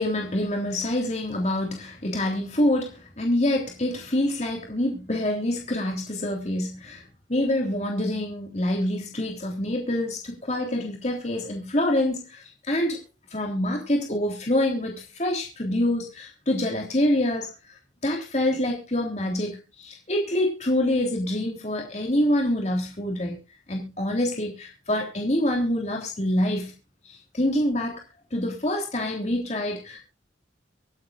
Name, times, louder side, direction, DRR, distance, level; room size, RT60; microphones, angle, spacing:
voice 1, 0.0-7.0 7.3-13.0 13.3-17.5 18.0-23.4 23.7-26.7 27.1-28.0 28.3-30.0, left 1 dB, 35° left, 1 dB, 3.5 m, -26 dB
25.5 x 8.5 x 2.5 m, 0.27 s
head